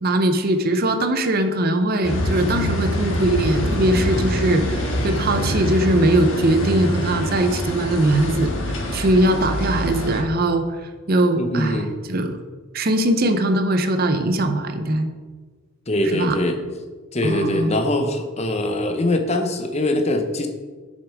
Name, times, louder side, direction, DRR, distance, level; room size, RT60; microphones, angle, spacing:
voice 1, 0.0-8.5 8.9-10.6 11.1-12.4 12.7-15.1 16.1-16.4 17.2-17.8, right 1 dB, 45° right, 7 dB, 0.6 m, -20 dB
sound 1, 2.0-10.2, equal, 60° left, 1.5 m, -25 dB
voice 2, 11.4-11.9 15.9-16.6 17.1-20.5, left 1 dB, 30° left, 5 dB, 0.7 m, -22 dB
7.0 x 6.4 x 4.7 m, 1.4 s
head